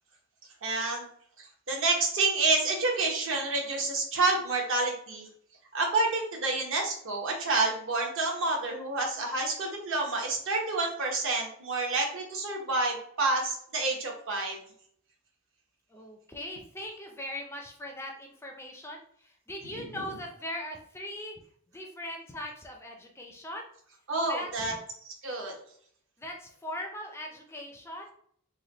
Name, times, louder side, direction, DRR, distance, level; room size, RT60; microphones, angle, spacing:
voice 1, 0.6-1.1 1.4-5.3 5.7-14.6 19.9-20.0 24.1-24.8 25.0-25.5, right 3 dB, 60° right, 0 dB, 0.9 m, -29 dB
voice 2, 15.9-21.4 21.7-23.7 24.2-24.8 26.2-28.1, left 1 dB, 10° left, 2 dB, 0.4 m, -40 dB
3.2 x 2.2 x 3.9 m, 0.63 s
head